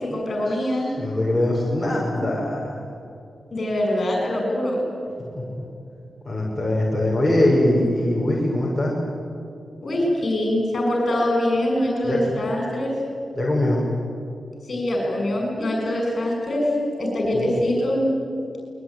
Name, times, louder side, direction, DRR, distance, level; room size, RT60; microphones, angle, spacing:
voice 1, 0.0-0.9 3.5-4.8 9.8-13.0 14.7-18.1, left 1 dB, 40° left, 0 dB, 6.5 m, -23 dB
voice 2, 1.0-2.8 5.2-5.4 6.2-9.0 12.1-12.4 13.4-13.9 17.3-17.5, left 1 dB, ahead, -5 dB, 5.7 m, -22 dB
27.0 x 21.5 x 9.6 m, 2.6 s
wide cardioid pair, 160°, 0 cm